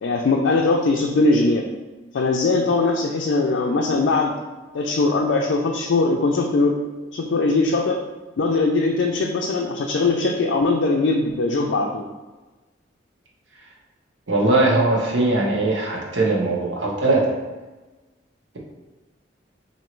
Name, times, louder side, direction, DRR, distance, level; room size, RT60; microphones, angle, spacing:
voice 1, 0.0-1.6 2.1-4.3 4.7-6.8 7.1-8.0 8.4-12.0, left 3 dB, 70° left, 0 dB, 0.4 m, -20 dB
voice 2, 14.3-17.3, right 2 dB, 85° right, -3 dB, 1.0 m, -20 dB
3.0 x 2.7 x 4.4 m, 1.2 s
head